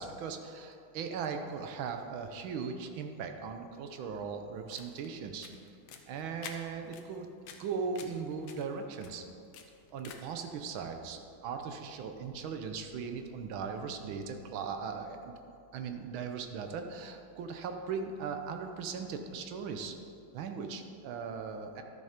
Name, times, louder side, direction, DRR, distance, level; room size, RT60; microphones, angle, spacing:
voice 1, 0.0-5.5 6.1-7.3 7.6-9.2 9.9-15.3 15.7-20.0 20.3-21.8, right 5 dB, 80° right, 6 dB, 1.6 m, -38 dB
sound 1, 4.5-10.5, left 6 dB, 75° left, 1.6 m, -51 dB
12.0 x 6.8 x 5.1 m, 2.5 s
omnidirectional pair, 2.2 m